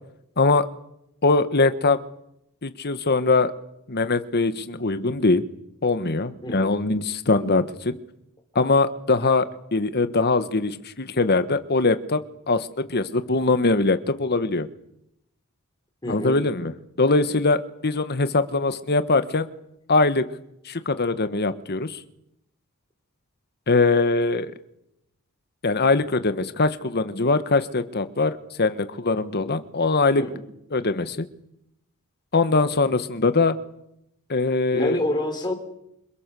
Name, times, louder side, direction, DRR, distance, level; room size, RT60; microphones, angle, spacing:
voice 1, 1.2-2.0 2.6-3.5 3.9-5.5 5.8-8.0 8.5-14.7 16.1-16.7 17.0-19.5 19.9-20.2 20.6-22.0 23.7-24.5 25.6-30.2 30.7-31.3 32.3-33.6 34.3-35.0, left 3 dB, 50° left, 11 dB, 1.3 m, -22 dB
voice 2, 6.4-6.7 16.0-16.4 30.1-30.4 34.7-35.5, left 1 dB, 20° left, 3 dB, 4.3 m, -27 dB
28.0 x 26.0 x 6.9 m, 0.80 s
head